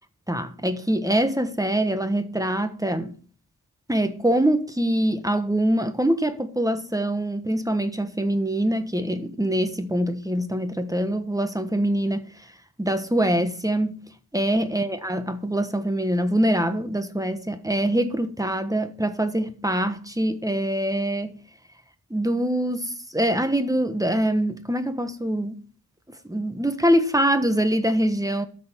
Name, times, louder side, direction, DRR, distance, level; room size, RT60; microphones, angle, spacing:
voice 1, 0.3-3.1 3.9-12.3 12.8-14.0 14.3-21.3 22.1-25.6 26.3-28.5, right 1 dB, 10° right, 1.3 m, -24 dB
13.5 x 6.1 x 4.4 m
wide cardioid pair, 60°, 36 cm